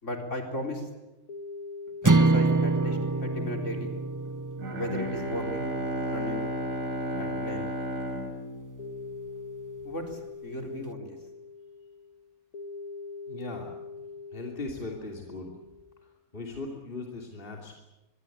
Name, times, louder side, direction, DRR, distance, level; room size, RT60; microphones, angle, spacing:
voice 1, 0.0-0.9 2.0-4.0 4.7-5.7 6.1-6.5 7.2-7.7 9.8-11.1, left 1 dB, 50° left, 3 dB, 4.5 m, -36 dB
sound 1, 1.3-16.1, left 4 dB, 90° left, 2.9 m, -43 dB
sound 2, 2.0-6.4, right 3 dB, 20° right, 0.6 m, -26 dB
Bowed string instrument, 4.6-9.5, equal, 60° right, 3.8 m, -33 dB
voice 2, 13.3-13.7 14.0-14.1 14.3-15.5 16.0-17.7, left 3 dB, 35° left, 0 dB, 3.1 m, -39 dB
25.0 x 22.0 x 8.7 m, 1.0 s
omnidirectional pair, 1.6 m